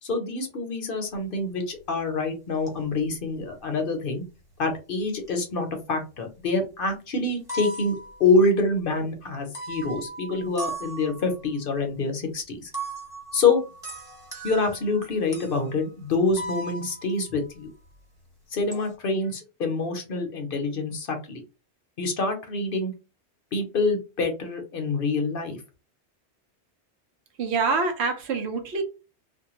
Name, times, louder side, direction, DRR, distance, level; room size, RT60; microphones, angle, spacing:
voice 1, 0.0-4.2 4.6-12.7 13.3-13.6 14.4-17.7 18.5-21.4 22.0-22.9 23.5-25.6, left 3 dB, 60° left, 0.8 m, -26 dB
sound 1, 1.1-1.2 1.7-2.1 2.7-3.2 3.4-4.1 5.0-5.5 5.8-6.5 6.9-7.0 7.2-8.8 9.5-11.5 12.7-18.0 18.3-18.9, right 2 dB, 5° right, 0.9 m, -39 dB
voice 2, 27.4-28.8, right 4 dB, 75° right, 0.9 m, -25 dB
2.5 x 2.2 x 2.9 m
omnidirectional pair, 1.2 m